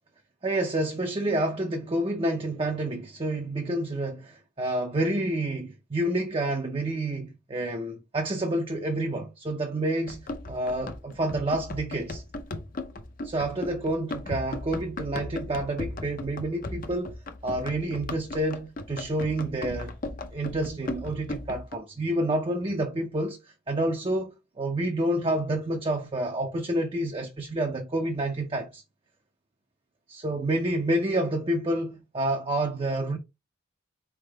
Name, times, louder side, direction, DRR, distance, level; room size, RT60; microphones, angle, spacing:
voice 1, 0.4-10.2 10.5-12.2 13.2-17.1 17.4-19.9 20.3-28.8 30.1-33.2, right 1 dB, 30° right, 0.5 m, -29 dB
Run, 10.1-21.8, left 2 dB, 45° left, 0.6 m, -37 dB
4.3 x 3.5 x 3.3 m
head